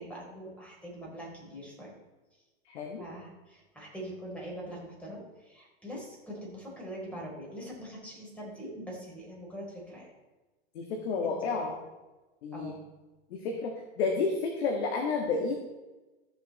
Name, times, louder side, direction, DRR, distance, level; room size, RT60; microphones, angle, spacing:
voice 1, 0.0-1.9 3.0-10.1 11.2-11.4 11.6-11.8 12.5-12.8, equal, 5° left, -4 dB, 4.1 m, -43 dB
voice 2, 2.7-3.1 10.7-11.7 12.4-12.7 13.3-15.6, left 4 dB, 65° left, 1 dB, 1.8 m, -31 dB
14.0 x 6.9 x 4.2 m, 1.1 s
hypercardioid pair, 115°, 33 cm